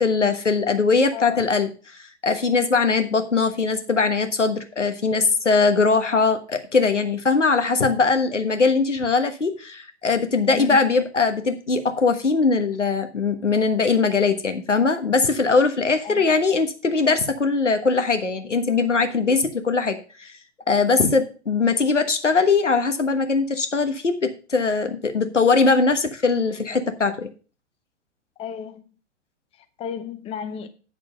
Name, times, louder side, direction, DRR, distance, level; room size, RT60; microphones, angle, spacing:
voice 1, 0.0-20.3 20.7-27.3, left 4 dB, 85° left, 1.4 m, -21 dB
voice 2, 1.1-1.5 10.5-10.9 16.0-16.3 28.4-28.8 29.8-30.7, left 8 dB, 15° left, 0.7 m, -33 dB
8.3 x 6.6 x 5.1 m
figure-of-eight pair, 110°, 35 cm